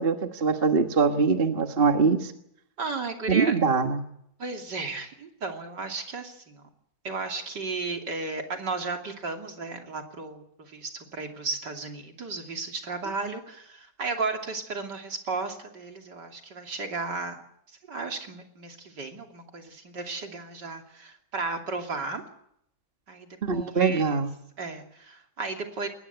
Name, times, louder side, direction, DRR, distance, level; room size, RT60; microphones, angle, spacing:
voice 1, 0.0-2.3 3.3-4.0 23.4-24.3, right 5 dB, 30° right, 6 dB, 1.5 m, -23 dB
voice 2, 2.8-3.5 4.4-6.7 7.0-17.4 17.9-22.2 23.1-24.2 24.6-25.9, right 3 dB, 60° right, 3 dB, 3.4 m, -34 dB
21.5 x 19.0 x 8.1 m, 0.73 s
omnidirectional pair, 2.1 m